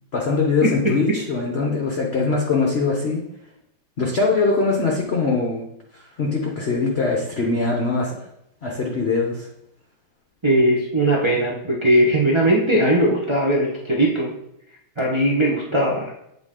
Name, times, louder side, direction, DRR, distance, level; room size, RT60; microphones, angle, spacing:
voice 1, 0.1-3.2 4.0-5.6 6.2-8.1 8.6-9.5, left 3 dB, 50° left, -1 dB, 0.8 m, -22 dB
voice 2, 10.4-14.3 15.0-16.1, right 1 dB, 40° right, -4 dB, 0.4 m, -19 dB
8.0 x 4.0 x 3.7 m, 0.79 s
omnidirectional pair, 2.2 m